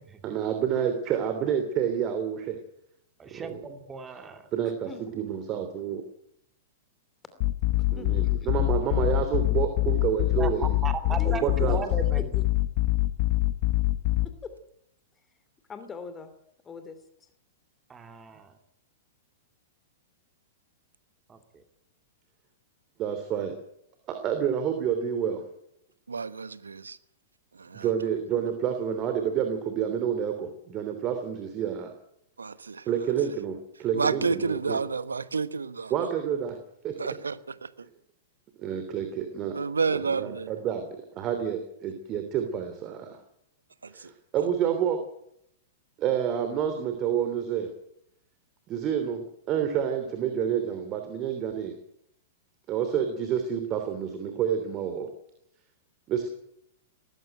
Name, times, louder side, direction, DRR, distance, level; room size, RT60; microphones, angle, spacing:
voice 1, 0.2-2.6 3.3-3.6 4.5-4.9 5.1-6.0 7.9-10.8 11.2-11.8 23.0-23.6 24.1-25.4 27.7-31.9 32.9-34.8 35.9-36.6 36.8-37.0 38.6-39.6 39.9-40.9 41.1-43.2 43.9-45.0 46.0-47.7 48.7-51.8 52.7-55.1 56.1-56.3, right 8 dB, 35° right, 3.1 m, -29 dB
voice 2, 3.2-4.4 10.3-12.3 17.9-18.5 21.3-21.4, right 5 dB, 20° right, 2.5 m, -36 dB
sound 1, 7.4-14.2, left 18 dB, 50° left, 1.3 m, -25 dB
voice 3, 7.9-8.5 11.0-11.8 12.2-12.4 14.2-14.5 15.7-16.3 16.6-17.3, left 5 dB, 20° left, 2.7 m, -41 dB
voice 4, 26.1-27.0 27.5-27.9 32.4-32.9 33.9-35.9 37.0-37.9 39.5-40.5 43.8-44.1, right 5 dB, 80° right, 1.1 m, -30 dB
19.0 x 15.5 x 9.2 m
figure-of-eight pair, 105°, 0 cm